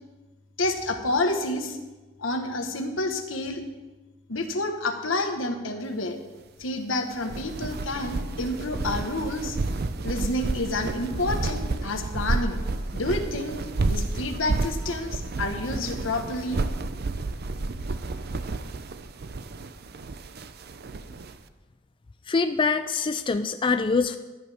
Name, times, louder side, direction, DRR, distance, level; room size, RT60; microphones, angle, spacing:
voice 1, 0.6-1.8 2.2-3.6 4.3-6.2 6.6-9.6 10.0-12.6 12.9-16.7, left 2 dB, 80° left, 5 dB, 1.4 m, -29 dB
sound 1, 7.1-21.3, right 3 dB, 55° right, 0.6 m, -31 dB
voice 2, 22.3-24.2, left 4 dB, 25° left, 8 dB, 0.4 m, -24 dB
15.5 x 11.0 x 3.5 m, 1.2 s
head